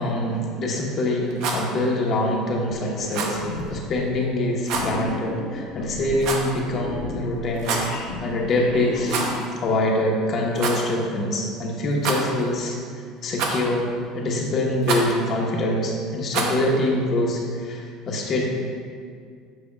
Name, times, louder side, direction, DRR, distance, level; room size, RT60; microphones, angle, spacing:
voice 1, 0.0-9.2 9.6-12.8 13.2-13.9 14.1-18.4, left 1 dB, 45° left, -1 dB, 1.3 m, -24 dB
Rattle, 1.3-1.7 3.1-3.4 4.6-4.9 6.2-6.6 7.5-7.9 9.0-9.5 9.7-9.8 10.5-10.8 12.0-12.5 13.4-13.8 14.8-15.1 16.3-16.6, right 4 dB, 70° right, 0.8 m, -27 dB
sound 1, 2.8-3.1 3.3-4.0 4.7-9.7, left 3 dB, 90° left, 0.8 m, -34 dB
7.7 x 6.3 x 2.4 m, 2.2 s
supercardioid pair, 100°, 0 cm